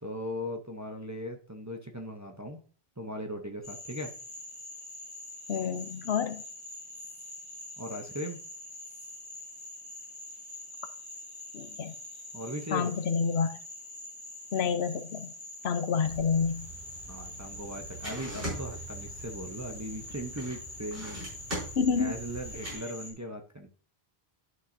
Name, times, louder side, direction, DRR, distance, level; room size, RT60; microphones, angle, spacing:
voice 1, 0.0-2.6 3.0-4.1 7.8-8.4 12.3-12.9 15.9-16.2 17.1-21.2 21.9-23.7, equal, 20° right, 2 dB, 0.6 m, -38 dB
Frog, 3.6-23.1, left 1 dB, 10° left, 2.1 m, -45 dB
voice 2, 5.5-6.4 11.5-11.9 12.7-13.6 14.5-15.3 15.6-16.7 21.8-22.1, left 6 dB, 75° left, 10 dB, 1.0 m, -28 dB
sound 1, 16.0-22.8, right 1 dB, 60° right, 4.5 m, -42 dB
11.0 x 5.8 x 2.6 m, 0.43 s
omnidirectional pair, 1.1 m